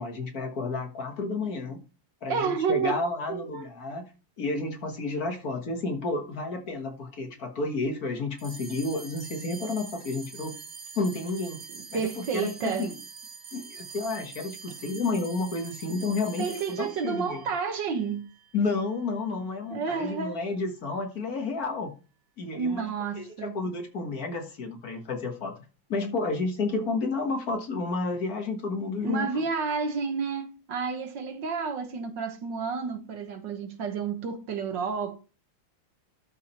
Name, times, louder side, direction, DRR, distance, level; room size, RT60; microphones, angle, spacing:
voice 1, 0.0-1.8 2.2-4.1 4.4-10.6 11.0-11.6 11.9-13.0 13.5-16.5 16.8-17.5 18.5-21.9 22.4-22.8 23.2-25.6 25.9-29.4, left 3 dB, 50° left, 1.8 m, -31 dB
voice 2, 2.3-3.0 3.3-3.6 11.8-12.9 16.4-18.2 19.7-20.4 22.5-23.5 29.0-35.2, right 5 dB, 70° right, 1.9 m, -30 dB
sound 1, 8.4-19.0, right 5 dB, 50° right, 2.6 m, -45 dB
12.5 x 4.8 x 4.3 m
omnidirectional pair, 2.1 m